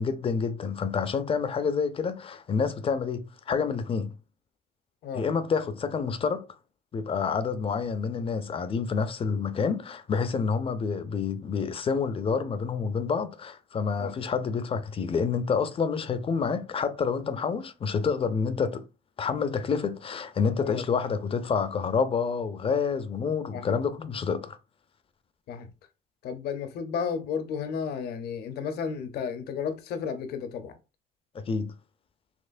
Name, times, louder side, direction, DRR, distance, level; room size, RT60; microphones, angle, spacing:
voice 1, 0.0-4.1 5.1-6.5 6.9-18.9 19.2-24.6 31.3-31.7, left 5 dB, 35° left, 0.5 m, -28 dB
voice 2, 26.2-30.7, left 6 dB, 70° left, 0.7 m, -33 dB
4.2 x 2.9 x 2.5 m
cardioid pair, 110°, 17 cm